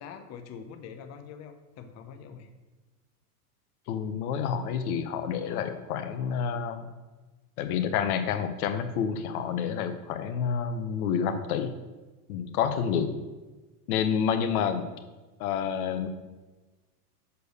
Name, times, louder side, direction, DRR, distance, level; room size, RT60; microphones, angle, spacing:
voice 1, 0.0-2.5, left 7 dB, 35° left, 7 dB, 0.8 m, -44 dB
voice 2, 3.9-6.9 7.6-11.7 12.3-13.2 13.9-14.8 15.4-16.1, left 7 dB, 70° left, 9 dB, 0.9 m, -29 dB
6.9 x 4.6 x 6.4 m, 1.2 s
supercardioid pair, 120°, 46 cm